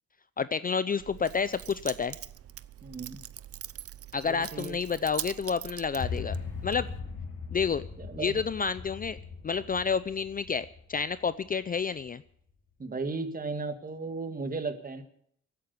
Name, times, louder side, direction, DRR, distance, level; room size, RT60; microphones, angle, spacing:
voice 1, 0.4-2.2 4.1-6.4 6.6-6.9 7.5-7.8 8.2-9.2 9.4-12.2, left 6 dB, 30° left, 15 dB, 0.5 m, -29 dB
Keys jangling, 1.0-7.0, right 11 dB, 50° right, 0.7 m, -43 dB
voice 2, 2.8-3.2 4.2-4.8 8.0-8.4 12.8-15.0, right 3 dB, 30° right, 8 dB, 1.9 m, -35 dB
sound 1, 6.0-12.1, left 5 dB, 50° left, 3.0 m, -40 dB
16.0 x 9.0 x 8.2 m, 0.67 s
cardioid pair, 90°, 30 cm